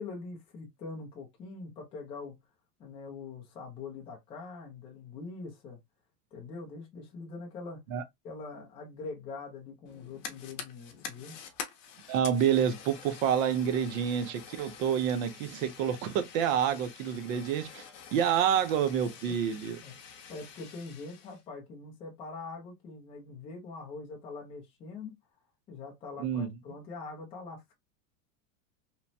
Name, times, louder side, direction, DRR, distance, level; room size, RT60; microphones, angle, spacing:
voice 1, 0.0-2.4 2.8-5.8 6.3-7.8 8.2-11.4 19.3-20.0 20.3-25.1 25.7-27.7, left 4 dB, 15° left, 0.4 m, -43 dB
Fire, 9.9-21.4, left 7 dB, 50° left, 0.8 m, -47 dB
voice 2, 12.1-17.8 18.1-19.8 26.2-26.5, right 8 dB, 55° right, 0.7 m, -28 dB
3.0 x 2.1 x 2.5 m
supercardioid pair, 155°, 48 cm